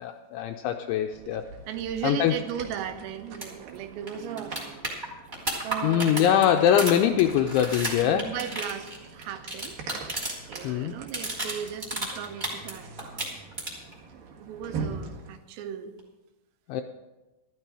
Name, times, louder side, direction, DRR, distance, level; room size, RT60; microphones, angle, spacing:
voice 1, 0.0-1.5 2.0-2.4 5.8-8.4 10.6-11.0 16.7-16.8, left 10 dB, 85° left, 6 dB, 2.7 m, -23 dB
sound 1, 1.1-15.4, right 5 dB, 60° right, 2.5 m, -43 dB
voice 2, 1.7-4.6 5.6-6.6 8.0-9.8 10.5-13.4 14.1-15.9, right 9 dB, 85° right, 8 dB, 3.6 m, -37 dB
sound 2, 3.3-3.5 3.7-3.8 4.1-10.6 10.9-12.7 13.0-13.9 16.0-16.1, right 1 dB, 20° right, 1.9 m, -33 dB
13.5 x 12.5 x 4.8 m, 1.1 s
omnidirectional pair, 5.9 m